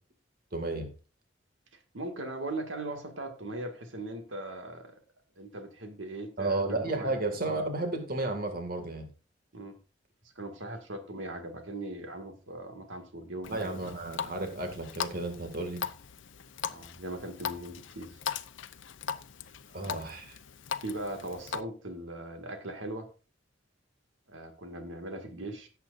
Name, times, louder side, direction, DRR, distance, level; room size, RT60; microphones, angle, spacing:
voice 1, 0.5-0.9 6.4-9.1 13.5-15.8 19.7-20.4, right 2 dB, 50° right, 2.1 m, -32 dB
voice 2, 1.9-5.0 5.4-7.1 9.5-9.8 10.4-13.7 16.7-18.2 20.8-23.1 24.3-25.7, right 1 dB, 85° right, 2.0 m, -39 dB
Water tap faucet, 13.4-21.6, left 7 dB, 80° left, 0.7 m, -39 dB
17.5 x 8.0 x 2.6 m
head